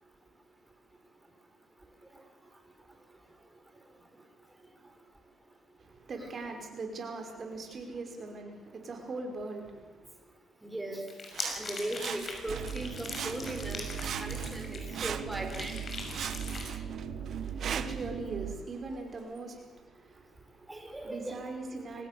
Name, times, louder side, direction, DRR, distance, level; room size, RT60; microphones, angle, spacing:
voice 1, 5.8-10.1 17.3-20.7 21.0-22.1, right 3 dB, 45° right, 3 dB, 5.7 m, -41 dB
voice 2, 10.6-11.1 11.5-15.8 20.7-21.4, right 1 dB, 15° right, 4 dB, 3.9 m, -38 dB
sound 1, 11.1-15.2 15.5-16.6, left 3 dB, 35° left, 6.0 m, -41 dB
Sawing, 11.3-12.8 13.1-13.7 14.0-15.7 16.1-18.1 18.8-18.9, right 8 dB, 60° right, 1.1 m, -40 dB
sound 2, 12.5-18.6, right 7 dB, 85° right, 2.5 m, -39 dB
24.5 x 19.5 x 7.0 m, 1.2 s
cardioid pair, 90°, 0 cm